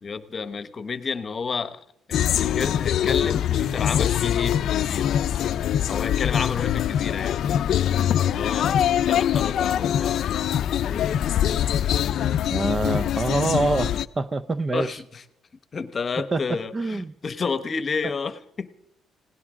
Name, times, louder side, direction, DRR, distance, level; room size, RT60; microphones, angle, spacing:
voice 1, 0.0-1.8 2.1-5.1 5.9-7.4 8.2-10.3 10.8-11.2 14.7-15.2 15.7-18.7, left 5 dB, 40° left, 1.1 m, -31 dB
sound 1, 2.1-14.1, left 10 dB, 65° left, 0.5 m, -23 dB
voice 2, 12.5-14.9 16.2-17.1, right 3 dB, 30° right, 0.6 m, -26 dB
19.5 x 17.5 x 3.7 m
cardioid pair, 95°, 0 cm